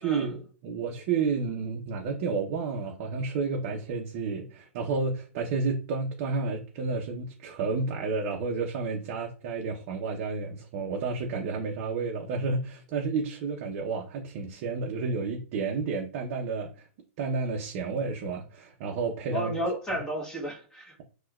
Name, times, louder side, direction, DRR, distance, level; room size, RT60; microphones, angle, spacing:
voice 1, 0.0-16.7 17.2-19.5, right 4 dB, 45° right, 0.5 m, -31 dB
voice 2, 19.3-21.0, equal, 10° left, 0.9 m, -32 dB
4.2 x 2.2 x 2.3 m
hypercardioid pair, 150°, 7 cm